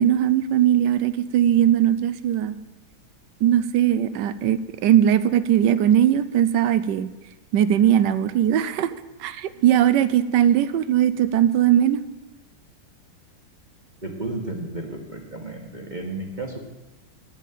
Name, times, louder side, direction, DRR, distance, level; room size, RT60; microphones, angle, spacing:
voice 1, 0.0-2.6 3.4-7.1 7.5-8.9 9.2-12.0, right 10 dB, 75° right, 14 dB, 1.1 m, -19 dB
voice 2, 14.0-16.6, right 2 dB, 25° right, 1 dB, 1.3 m, -33 dB
9.4 x 7.3 x 9.1 m, 1.1 s
omnidirectional pair, 2.2 m